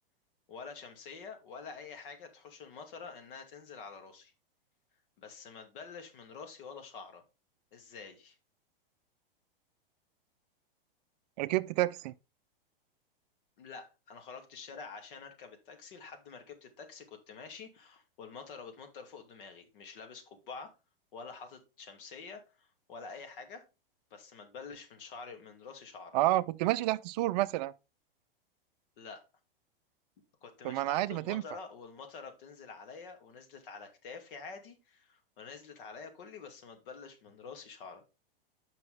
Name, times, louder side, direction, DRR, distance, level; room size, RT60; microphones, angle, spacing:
voice 1, 0.5-4.3 5.2-7.2 7.7-8.4 13.6-20.8 21.1-23.7 24.1-26.2 29.0-29.2 30.4-38.0, left 5 dB, 65° left, 2.4 m, -47 dB
voice 2, 11.4-12.1 26.1-27.7 30.6-31.4, right 16 dB, 45° right, 0.5 m, -29 dB
7.6 x 5.7 x 3.6 m
hypercardioid pair, 115°, 29 cm